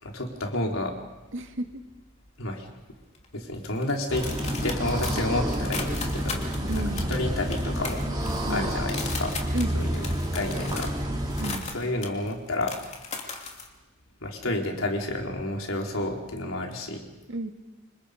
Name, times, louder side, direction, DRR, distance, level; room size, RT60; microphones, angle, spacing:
voice 1, 0.0-0.9 2.4-2.7 3.3-4.3 4.6-6.4 6.7-6.8 7.1-8.0 8.5-9.3 9.7-10.1 10.3-10.9 11.7-12.7 14.2-17.0, left 1 dB, 90° left, 1 dB, 4.0 m, -30 dB
sound 1, 1.0-2.0 2.3-2.7 3.1-13.7, left 4 dB, 35° left, 2.9 m, -38 dB
voice 2, 1.3-1.8 6.6-7.4 8.5-8.8 9.5-10.1 11.4-11.7 17.3-17.5, right 1 dB, 70° right, 5 dB, 2.2 m, -33 dB
sound 2, 4.1-11.6, equal, 20° right, 3.8 m, -29 dB
29.0 x 26.0 x 5.2 m, 1.1 s
head